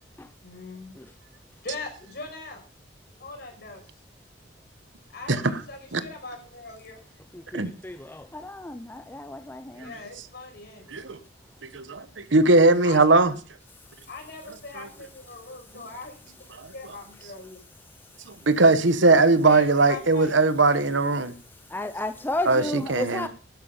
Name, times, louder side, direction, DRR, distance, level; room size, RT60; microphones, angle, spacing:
voice 1, 0.4-1.0 1.6-2.6 3.2-3.8 5.1-7.0 9.8-10.9 12.8-13.2 14.1-17.6 19.5-20.3, left 3 dB, 60° left, 5.8 m, -40 dB
voice 2, 7.3-9.9 18.1-18.4 21.7-23.3, left 2 dB, 10° left, 0.5 m, -33 dB
voice 3, 11.6-13.3 14.8-14.9 16.6-16.7 18.3-21.3 22.5-23.3, right 3 dB, 80° right, 1.2 m, -20 dB
12.0 x 11.0 x 5.5 m
head